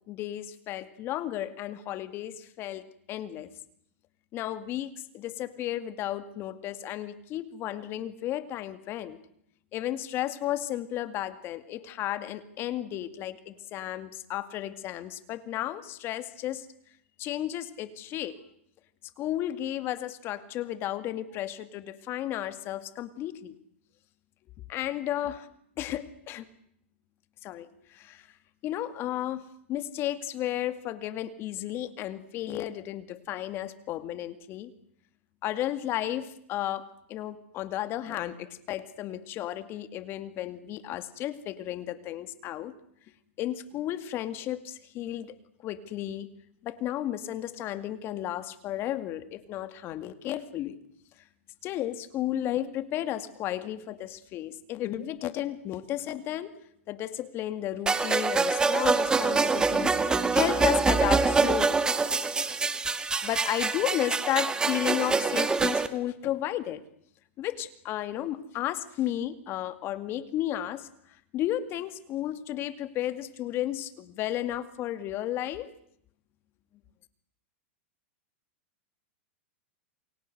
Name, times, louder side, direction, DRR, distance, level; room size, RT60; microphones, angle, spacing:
voice 1, 0.1-2.8 3.1-3.5 4.3-9.2 9.7-16.7 17.2-18.4 19.2-23.6 24.7-25.5 25.8-26.5 27.4-28.3 28.6-29.4 29.7-34.7 35.4-42.7 43.4-45.4 45.6-46.3 46.6-50.8 51.6-56.5 56.9-61.8 63.2-66.8 67.4-70.9 71.3-75.7, left 12 dB, 35° left, 12 dB, 2.3 m, -33 dB
sound 1, 57.9-65.9, right 4 dB, 10° right, 1.7 m, -25 dB
29.0 x 23.0 x 8.0 m, 0.72 s
hypercardioid pair, 135°, 7 cm